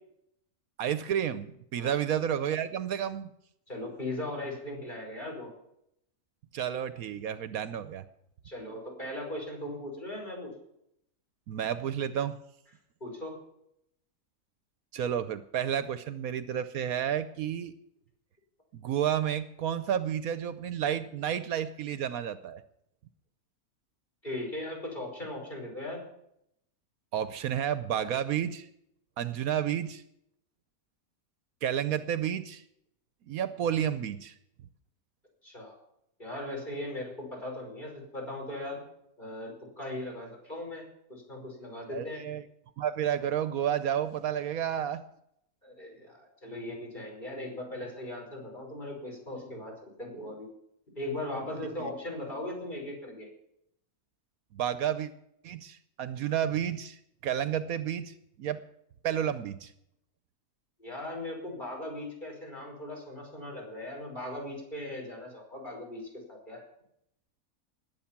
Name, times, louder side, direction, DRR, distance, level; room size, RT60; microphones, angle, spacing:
voice 1, 0.8-3.3 6.5-8.0 11.5-12.4 14.9-17.7 18.7-22.6 27.1-28.7 29.2-30.0 31.6-32.6 33.3-34.3 41.9-42.4 42.8-45.0 51.8-51.9 54.5-55.1 55.4-58.6 59.0-59.7, right 9 dB, 75° right, 12 dB, 1.2 m, -31 dB
voice 2, 3.7-5.5 8.4-10.5 13.0-13.3 24.2-26.0 35.4-35.8 36.2-38.8 39.2-40.8 41.1-42.2 45.6-50.5 51.0-53.3 60.8-66.7, left 1 dB, 30° left, -1 dB, 5.6 m, -38 dB
20.0 x 8.4 x 6.0 m, 0.76 s
omnidirectional pair, 1.6 m